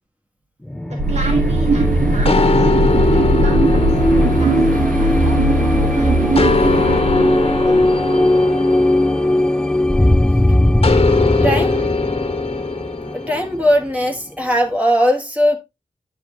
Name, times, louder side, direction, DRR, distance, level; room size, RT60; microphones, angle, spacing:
sound 1, 0.6-14.1, left 1 dB, 5° left, 0.4 m, -19 dB
voice 1, 0.8-2.7 3.1-6.3 6.7-8.6, right 2 dB, 55° right, 3.7 m, -34 dB
sound 2, 1.0-8.4, right 2 dB, 80° right, 1.6 m, -19 dB
sound 3, 2.3-5.8 6.4-10.1 10.8-13.5, left 3 dB, 45° left, 1.4 m, -21 dB
voice 2, 11.4-11.9 13.1-15.6, equal, 10° right, 2.0 m, -18 dB
9.7 x 6.9 x 3.0 m
wide cardioid pair, 125°, 13 cm